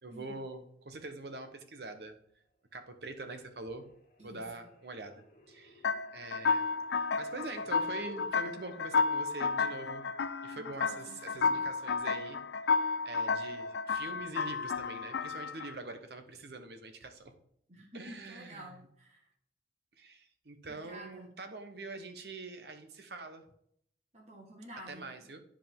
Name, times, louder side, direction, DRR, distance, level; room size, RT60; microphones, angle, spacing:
voice 1, 0.0-2.2 2.7-3.9 4.2-6.7 6.9-10.1 10.4-12.4 13.0-17.3 17.9-18.8 20.0-23.5 24.9-25.4, right 2 dB, 65° right, 8 dB, 1.0 m, -44 dB
sound 1, 2.3-2.9 3.2-8.3, left 1 dB, 45° left, 1.8 m, -56 dB
sound 2, 5.8-15.7, left 4 dB, 75° left, 0.3 m, -32 dB
voice 2, 10.5-11.6 17.7-19.2 20.6-21.3 24.1-25.3, equal, 40° right, -2 dB, 1.3 m, -50 dB
10.0 x 5.0 x 3.6 m, 0.69 s
head